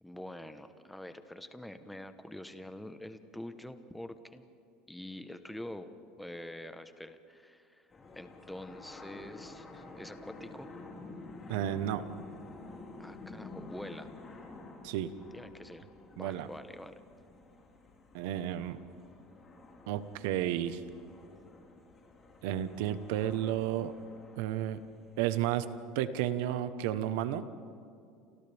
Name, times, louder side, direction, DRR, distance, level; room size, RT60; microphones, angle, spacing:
voice 1, 0.0-4.5 4.9-7.9 8.1-10.7 13.0-14.1 15.3-17.0, left 1 dB, 5° left, 9 dB, 1.1 m, -46 dB
sound 1, 7.9-25.4, left 3 dB, 25° left, 4.1 m, -51 dB
voice 2, 11.5-12.1 14.8-15.1 16.2-16.5 18.1-18.8 19.9-20.8 22.4-23.9 24.4-24.8 25.2-25.7 25.9-27.5, right 11 dB, 80° right, 12 dB, 1.1 m, -32 dB
29.5 x 27.0 x 3.6 m, 2.5 s
supercardioid pair, 120°, 0 cm